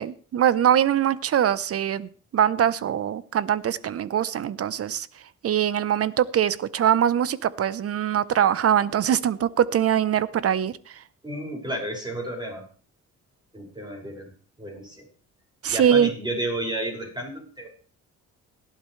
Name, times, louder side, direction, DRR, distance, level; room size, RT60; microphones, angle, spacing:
voice 1, 0.0-5.1 5.4-10.7 15.6-16.1, right 9 dB, 50° right, 17 dB, 0.9 m, -22 dB
voice 2, 11.2-12.7 13.5-14.3 14.6-15.1 15.7-17.7, right 1 dB, 15° right, 0 dB, 5.9 m, -32 dB
18.0 x 12.0 x 3.3 m, 0.41 s
cardioid pair, 90°, 30 cm